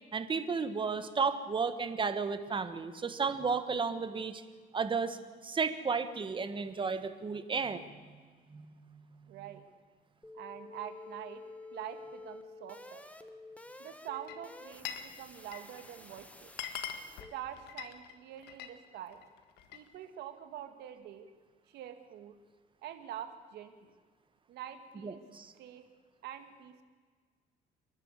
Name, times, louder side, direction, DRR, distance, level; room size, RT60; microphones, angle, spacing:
voice 1, 0.1-4.4 4.7-5.2 5.4-8.2 8.5-9.3 25.0-25.5, right 5 dB, 30° right, 10 dB, 1.6 m, -33 dB
voice 2, 9.3-9.6 10.3-11.4 11.7-13.1 13.8-16.5 17.3-19.2 19.7-21.3 21.7-22.3 22.8-23.9 24.5-25.2 25.5-25.8 26.2-26.8, right 10 dB, 80° right, 8 dB, 2.1 m, -45 dB
sound 1, 10.2-17.3, left 2 dB, 10° left, 1.5 m, -50 dB
Glass, 14.1-15.1 15.4-15.8 16.2-16.3 16.5-18.8 19.1-19.9, left 9 dB, 80° left, 1.8 m, -42 dB
28.5 x 12.0 x 8.4 m, 1.5 s
cardioid pair, 110°, 17 cm